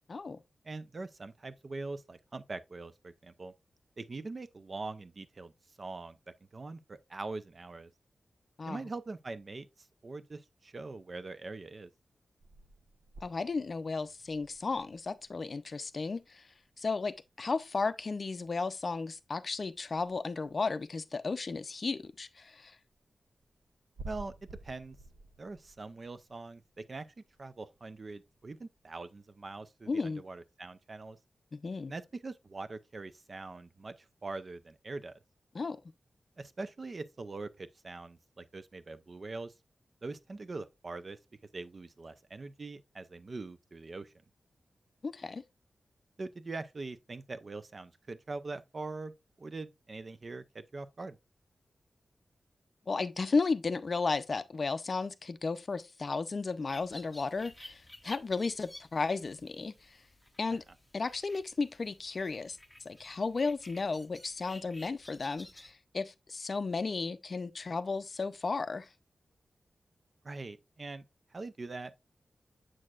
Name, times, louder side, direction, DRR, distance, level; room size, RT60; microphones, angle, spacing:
voice 1, 0.1-0.4 8.6-8.8 13.2-16.4 16.8-22.8 29.9-30.2 31.5-31.9 35.5-35.8 45.0-45.4 52.9-59.7 60.4-60.6 60.9-62.6 62.8-68.9, left 4 dB, 45° left, 0.5 m, -34 dB
voice 2, 0.6-3.5 4.0-5.5 5.8-6.2 6.5-7.9 8.7-11.9 24.0-24.3 24.6-25.0 25.4-27.1 27.4-31.2 31.9-35.1 36.4-39.5 40.0-41.2 41.5-44.1 46.2-49.1 49.4-51.2 60.5-60.6 70.2-71.0 71.3-72.0, right 3 dB, 40° right, 0.5 m, -43 dB
sound 1, 12.4-18.1 18.3-28.8, right 2 dB, 80° right, 0.7 m, -54 dB
sound 2, 56.7-65.7, left 1 dB, 10° left, 0.7 m, -53 dB
7.5 x 6.4 x 2.4 m
wide cardioid pair, 145°, 0 cm